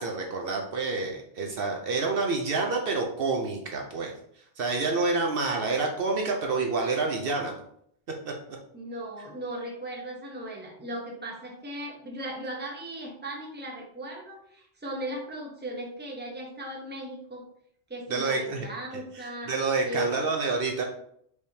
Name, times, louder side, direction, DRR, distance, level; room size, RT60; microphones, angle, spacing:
voice 1, 0.0-4.1 4.6-7.5 8.3-8.4 18.1-18.7 19.2-20.8, right 3 dB, 65° right, 1 dB, 0.8 m, -28 dB
voice 2, 8.7-17.4 17.9-19.5 19.8-20.1, right 1 dB, 10° right, -1 dB, 0.8 m, -37 dB
4.7 x 3.4 x 2.7 m, 0.68 s
omnidirectional pair, 1.1 m